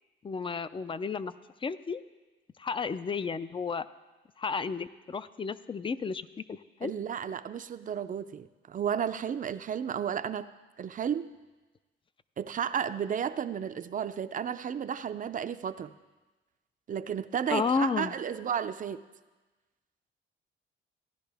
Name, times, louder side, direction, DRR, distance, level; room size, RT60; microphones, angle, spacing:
voice 1, 0.2-1.3 1.6-2.0 2.6-3.9 4.4-6.9 17.5-18.1, left 5 dB, 25° left, 15 dB, 0.4 m, -32 dB
voice 2, 6.8-10.5 10.8-11.3 12.4-15.9 16.9-19.0, right 8 dB, 40° right, 12 dB, 0.5 m, -33 dB
15.5 x 10.5 x 3.5 m, 1.2 s
cardioid pair, 90°, 20 cm